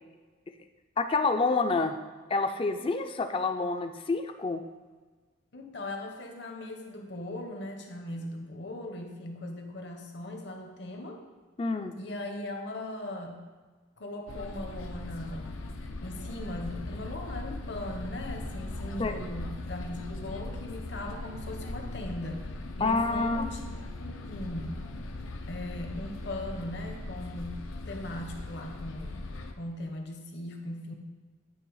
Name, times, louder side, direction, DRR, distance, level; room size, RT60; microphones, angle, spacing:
voice 1, 1.0-1.9 2.3-4.6 11.6-11.9 19.0-19.1 22.8-23.5, left 3 dB, 25° left, 8 dB, 0.3 m, -28 dB
voice 2, 5.5-11.2 12.0-13.4 14.0-15.6 16.0-23.7 24.0-24.8 25.5-27.6 27.9-29.3 29.6-30.9, left 1 dB, 55° left, 3 dB, 0.9 m, -39 dB
sound 1, 14.3-29.5, left 2 dB, 85° left, 0.6 m, -39 dB
9.2 x 3.3 x 4.7 m, 1.4 s
head